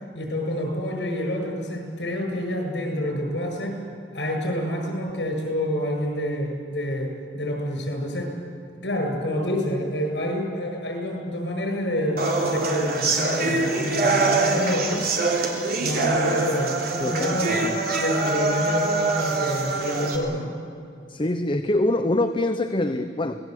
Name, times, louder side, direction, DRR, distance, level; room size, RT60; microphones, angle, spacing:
voice 1, 0.1-3.8 4.1-8.3 8.8-15.1 15.8-20.5, equal, 80° left, 2 dB, 7.7 m, -28 dB
sound 1, 12.2-20.2, right 3 dB, 60° right, 3.4 m, -24 dB
voice 2, 17.0-17.8 21.1-23.4, left 1 dB, 30° left, 8 dB, 0.8 m, -25 dB
26.0 x 19.5 x 8.2 m, 2.4 s
head